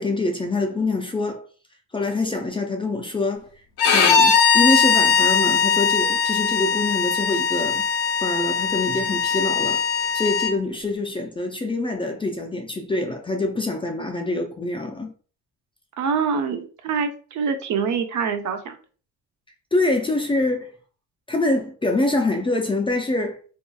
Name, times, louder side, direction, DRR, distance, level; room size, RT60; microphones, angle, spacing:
voice 1, 0.0-1.4 1.9-3.5 3.9-7.9 8.2-9.8 10.1-15.1 19.7-20.7 21.3-23.4, left 2 dB, 15° left, 0.4 m, -25 dB
Bowed string instrument, 3.8-10.5, left 6 dB, 70° left, 0.6 m, -20 dB
voice 2, 16.0-18.8, right 6 dB, 55° right, 0.5 m, -25 dB
2.7 x 2.3 x 2.2 m
cardioid pair, 90°, 35 cm